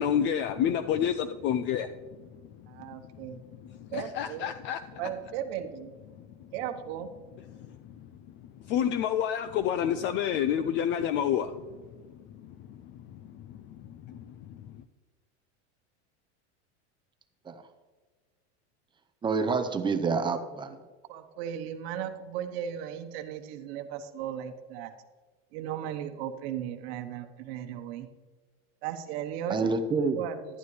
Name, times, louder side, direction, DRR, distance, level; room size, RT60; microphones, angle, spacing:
voice 1, 0.0-1.9 3.6-5.0 7.5-8.1 8.6-11.8 12.3-14.7, left 9 dB, 35° left, 11 dB, 0.4 m, -30 dB
voice 2, 2.7-3.4 3.9-4.5 5.0-5.9 6.5-7.1 21.1-24.9 25.5-28.1 28.8-30.4, right 10 dB, 60° right, 6 dB, 1.1 m, -36 dB
voice 3, 19.2-20.8 29.5-30.2, right 4 dB, 15° right, 8 dB, 0.6 m, -27 dB
11.0 x 11.0 x 3.2 m, 1.4 s
supercardioid pair, 145°, 34 cm